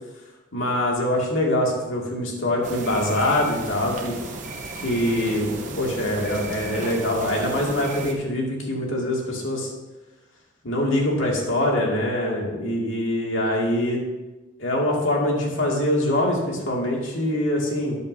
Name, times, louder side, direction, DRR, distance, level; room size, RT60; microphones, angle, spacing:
voice 1, 0.5-4.2 4.8-9.7 10.6-14.0 14.6-18.0, left 1 dB, 75° left, -2 dB, 2.3 m, -24 dB
sound 1, 2.6-8.1, right 3 dB, 40° right, 1.1 m, -34 dB
13.0 x 9.5 x 2.7 m, 1.1 s
head